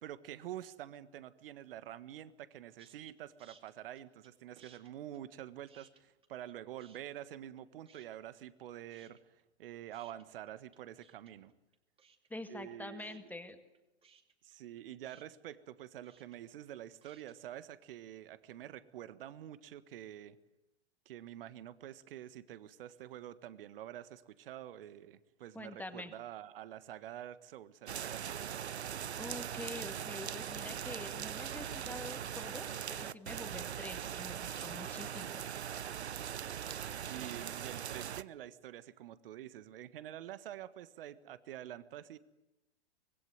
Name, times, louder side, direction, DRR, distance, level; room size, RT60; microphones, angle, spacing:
voice 1, 0.0-11.5 12.5-13.3 14.4-20.4 21.0-28.6 37.1-42.2, right 12 dB, 55° right, 14 dB, 1.6 m, -47 dB
sound 1, 2.8-3.1 3.4-4.3 4.6-6.5 6.8-7.6 7.9-8.6 8.9-17.3, right 5 dB, 15° right, 2.4 m, -64 dB
voice 2, 12.3-13.6 25.5-26.1 29.2-35.4, left 2 dB, 5° left, 7 dB, 2.0 m, -46 dB
sound 2, 27.9-38.2, right 9 dB, 70° right, 1.0 m, -41 dB
25.0 x 21.0 x 9.3 m, 0.98 s
figure-of-eight pair, 105°, 34 cm